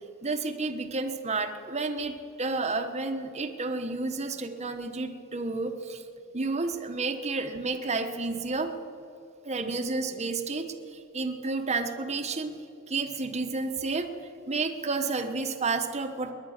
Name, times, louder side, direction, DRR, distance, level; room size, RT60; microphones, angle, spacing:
voice 1, 0.2-6.0 6.3-8.7 9.4-12.5 12.9-14.1 14.5-16.3, right 3 dB, 30° right, 6 dB, 1.1 m, -31 dB
21.5 x 10.5 x 6.5 m, 2.6 s
head